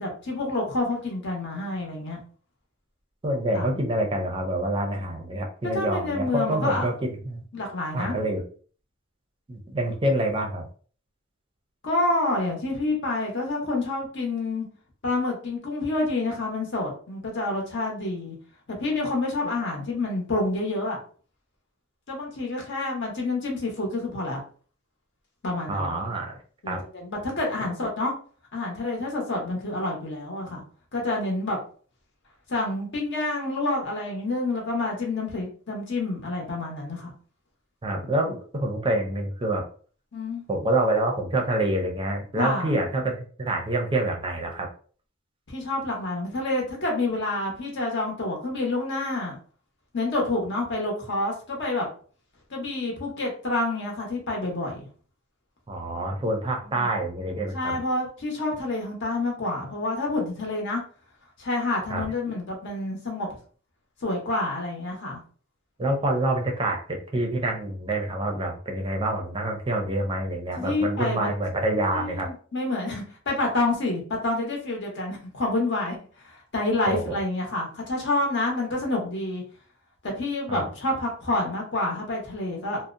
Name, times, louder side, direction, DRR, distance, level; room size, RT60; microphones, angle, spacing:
voice 1, 0.0-2.2 3.5-3.7 5.7-6.9 7.5-8.2 11.8-14.7 15.0-18.4 18.7-21.0 22.1-24.4 25.4-26.0 26.6-28.1 28.5-30.6 30.9-31.6 32.5-37.1 40.1-40.4 42.4-42.8 45.5-49.4 49.9-51.9 52.5-54.9 56.6-56.9 57.5-60.8 61.4-63.3 64.0-65.2 70.6-71.3 71.9-79.4 80.0-82.8, left 2 dB, 60° left, 0 dB, 0.8 m, -28 dB
voice 2, 3.2-7.4 7.9-8.4 9.5-10.7 25.7-26.4 26.7-26.8 37.8-39.6 40.5-44.7 55.7-57.8 61.9-62.1 65.8-72.3 76.9-77.2 80.5-80.7, right 1 dB, 25° right, 1 dB, 0.5 m, -27 dB
2.6 x 2.0 x 2.4 m, 0.42 s
head